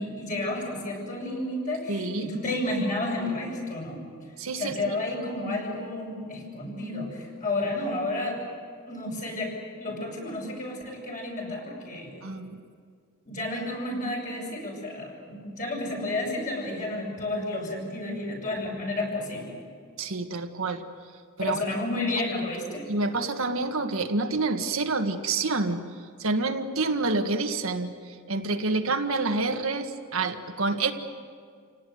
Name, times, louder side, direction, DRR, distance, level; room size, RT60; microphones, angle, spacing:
voice 1, 0.0-4.0 4.6-8.4 8.9-12.2 13.3-19.6 21.4-22.9, left 2 dB, 40° left, -1 dB, 7.3 m, -31 dB
voice 2, 1.9-2.3 4.4-5.0 12.2-12.6 20.0-20.8 21.4-21.6 22.9-25.8 26.2-30.9, right 3 dB, 70° right, 5 dB, 1.6 m, -28 dB
28.5 x 18.0 x 9.4 m, 2.1 s
head